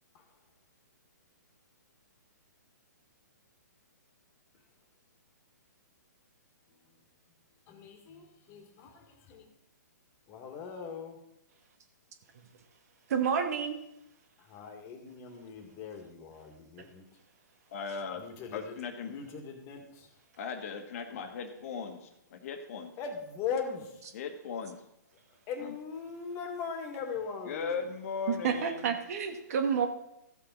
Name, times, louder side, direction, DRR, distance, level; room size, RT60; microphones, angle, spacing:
voice 1, 7.7-9.5 10.3-11.2 14.4-17.1 18.1-18.8 19.0-20.1 23.0-24.1 25.5-27.8, left 6 dB, 30° left, 4 dB, 1.9 m, -40 dB
voice 2, 13.1-13.8 28.3-29.9, right 7 dB, 55° right, 6 dB, 1.6 m, -29 dB
voice 3, 17.7-18.2 18.5-19.1 20.4-22.9 24.1-24.8 25.6-25.7 27.5-28.9, left 5 dB, 50° left, 6 dB, 1.5 m, -38 dB
14.5 x 7.0 x 4.0 m, 0.83 s
hypercardioid pair, 140°, 10 cm